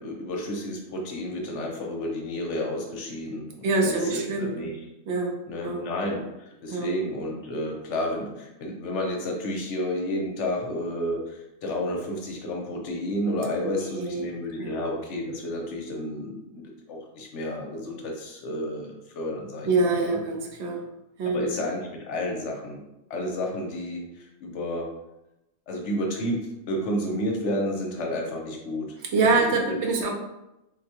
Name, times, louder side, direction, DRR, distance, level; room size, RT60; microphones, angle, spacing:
voice 1, 0.0-4.7 5.5-20.2 21.3-22.8 23.1-24.9 25.7-28.9 29.2-29.8, left 1 dB, 60° left, 0 dB, 0.9 m, -31 dB
voice 2, 3.6-4.7 5.1-5.3 5.6-5.8 6.7-6.9 13.8-14.2 14.6-14.7 19.7-20.8 21.2-21.5 29.1-30.1, right 3 dB, 60° right, 1 dB, 0.8 m, -25 dB
3.8 x 2.2 x 2.8 m, 0.93 s
omnidirectional pair, 1.5 m